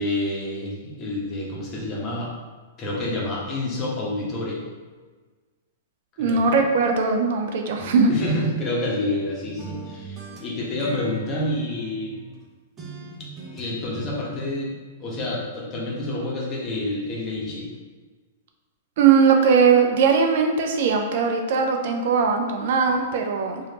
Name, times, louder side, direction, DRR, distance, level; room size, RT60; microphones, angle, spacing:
voice 1, 0.0-2.3 2.8-4.6 6.2-6.6 8.1-12.1 13.5-14.7 15.0-17.7, left 1 dB, 30° left, -4 dB, 1.3 m, -28 dB
voice 2, 6.2-8.1 19.0-23.6, right 5 dB, 60° right, 3 dB, 0.5 m, -19 dB
sound 1, 7.8-9.3 9.6-12.4 12.8-14.2, right 4 dB, 20° right, 0.9 m, -40 dB
4.8 x 2.8 x 3.0 m, 1.4 s
hypercardioid pair, 110°, 0 cm